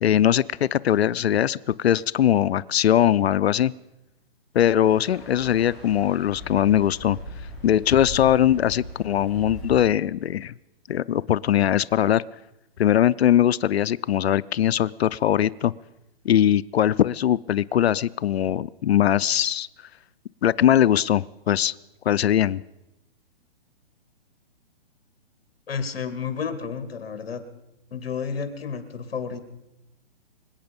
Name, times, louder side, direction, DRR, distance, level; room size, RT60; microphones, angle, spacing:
voice 1, 0.0-3.7 4.5-7.2 7.6-10.5 10.9-12.2 12.8-15.7 16.2-19.7 20.4-21.7 22.1-22.6, left 11 dB, 85° left, 19 dB, 0.6 m, -21 dB
sound 1, 4.8-9.8, equal, ahead, 5.4 m, -39 dB
voice 2, 25.7-27.4 27.9-29.4, left 6 dB, 70° left, 9 dB, 2.5 m, -31 dB
26.0 x 8.8 x 5.3 m, 0.92 s
hypercardioid pair, 155°, 31 cm